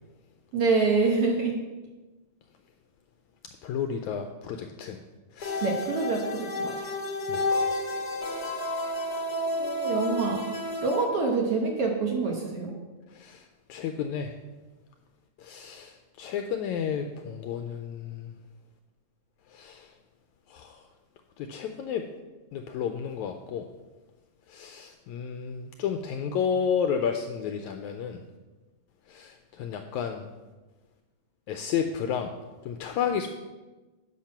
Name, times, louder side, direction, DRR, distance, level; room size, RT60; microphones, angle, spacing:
voice 1, 0.5-1.6 5.6-6.7 9.6-10.4 10.8-12.7, right 4 dB, 60° right, 0 dB, 1.7 m, -26 dB
voice 2, 3.6-5.0 5.3-5.7 7.3-7.4 13.1-14.3 15.4-18.3 19.5-19.9 20.5-20.8 21.4-22.0 22.5-23.6 24.5-28.2 29.1-30.2 31.5-32.3 32.6-33.3, left 7 dB, 80° left, 6 dB, 1.7 m, -32 dB
sound 1, 5.4-11.0, left 1 dB, 65° left, 0.9 m, -30 dB
10.5 x 6.7 x 5.8 m, 1.2 s
omnidirectional pair, 3.8 m